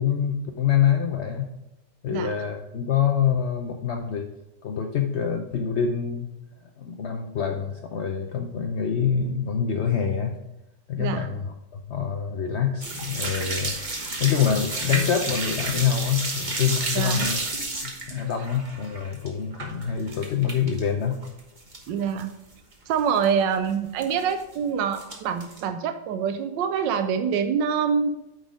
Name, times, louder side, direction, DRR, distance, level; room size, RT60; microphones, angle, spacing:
voice 1, 0.0-1.5 2.0-4.3 4.6-6.3 6.8-10.4 10.9-13.7 14.2-17.4 17.8-21.2, left 8 dB, 75° left, 3 dB, 0.6 m, -25 dB
sound 1, 12.8-20.8 21.1-21.9 22.2-22.3 22.7-22.8 23.0-23.2 24.0-24.5 24.9-25.6, right 2 dB, 30° right, 1.1 m, -31 dB
voice 2, 21.9-22.3 22.9-28.1, right 7 dB, 85° right, 8 dB, 1.3 m, -25 dB
9.2 x 4.1 x 5.0 m, 0.95 s
omnidirectional pair, 1.9 m